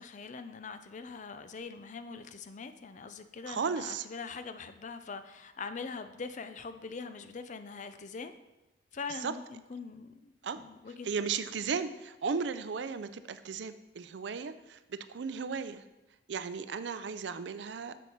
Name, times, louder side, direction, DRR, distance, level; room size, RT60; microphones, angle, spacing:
voice 1, 0.0-8.3 8.9-11.1, left 4 dB, 45° left, 10 dB, 0.5 m, -43 dB
voice 2, 3.5-4.1 9.2-9.3 10.4-10.6 11.0-15.8 16.3-17.9, right 5 dB, 75° right, 12 dB, 0.5 m, -35 dB
7.2 x 7.0 x 4.5 m, 0.98 s
head